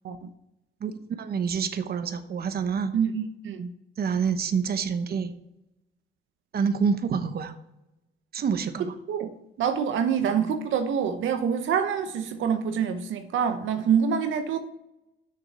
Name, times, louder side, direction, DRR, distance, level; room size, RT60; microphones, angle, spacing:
voice 1, 1.2-3.0 4.0-5.3 6.5-7.5 8.3-8.9, right 6 dB, 50° right, 9 dB, 1.0 m, -27 dB
voice 2, 2.9-3.7 9.1-9.3 9.6-14.6, right 7 dB, 75° right, 7 dB, 0.9 m, -26 dB
6.9 x 6.7 x 7.1 m, 0.88 s
cardioid pair, 90°, 20 cm